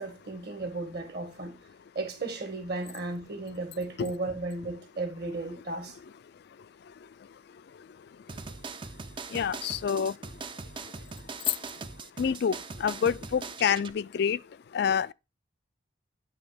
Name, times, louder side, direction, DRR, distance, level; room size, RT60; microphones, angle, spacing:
voice 1, 0.0-1.6 1.9-6.0, right 2 dB, 55° right, 1.6 m, -35 dB
sound 1, 8.3-13.9, right 4 dB, 25° right, 0.4 m, -41 dB
voice 2, 9.3-10.2 12.2-14.4 14.7-15.1, left 7 dB, 55° left, 0.3 m, -27 dB
9.1 x 3.0 x 4.8 m
head